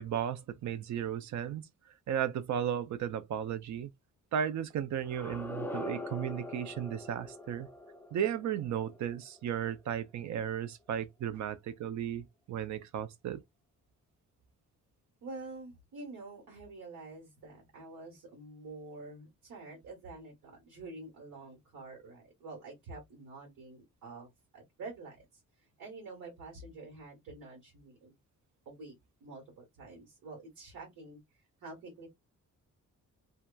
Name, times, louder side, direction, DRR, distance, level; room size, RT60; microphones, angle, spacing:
voice 1, 0.0-1.7 2.1-3.9 4.3-7.7 8.1-13.4, right 9 dB, 60° right, 0.5 m, -35 dB
sound 1, 5.0-9.9, left 1 dB, 5° left, 0.3 m, -43 dB
voice 2, 15.2-25.2 25.8-28.1 28.6-28.9 29.2-31.2 31.6-32.1, right 3 dB, 90° right, 1.3 m, -47 dB
2.8 x 2.2 x 2.2 m
cardioid pair, 115°, 32 cm